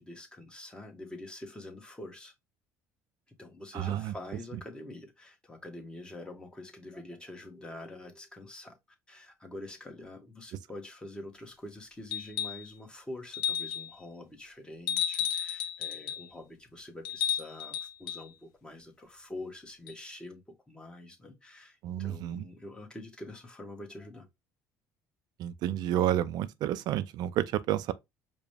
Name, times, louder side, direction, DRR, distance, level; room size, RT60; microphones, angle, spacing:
voice 1, 0.0-2.3 3.3-8.8 9.1-24.3, left 1 dB, 10° left, 1.3 m, -46 dB
voice 2, 3.7-4.1 21.8-22.5 25.4-27.9, right 12 dB, 65° right, 0.4 m, -30 dB
sound 1, 12.1-12.7 13.3-13.9 14.9-16.3 17.0-18.2 19.9-20.0, left 10 dB, 80° left, 0.6 m, -33 dB
4.8 x 2.2 x 3.2 m
supercardioid pair, 80°, 8 cm